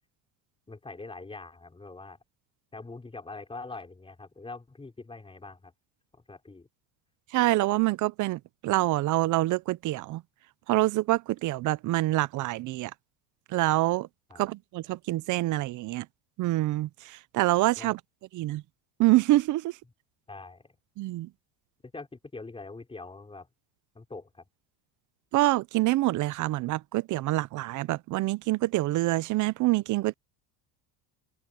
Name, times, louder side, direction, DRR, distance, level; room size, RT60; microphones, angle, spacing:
voice 1, 0.7-2.2 2.7-5.7 6.1-6.7 14.3-14.4 17.8-17.9 20.3-20.7 21.8-23.5 23.9-24.4, left 3 dB, 10° left, 5.5 m, -43 dB
voice 2, 7.3-10.2 10.7-12.9 13.5-14.1 14.4-16.1 16.4-18.0 18.3-18.6 19.0-19.8 21.0-21.3 25.3-30.1, right 18 dB, 45° right, 0.6 m, -26 dB
cardioid pair, 130°, 44 cm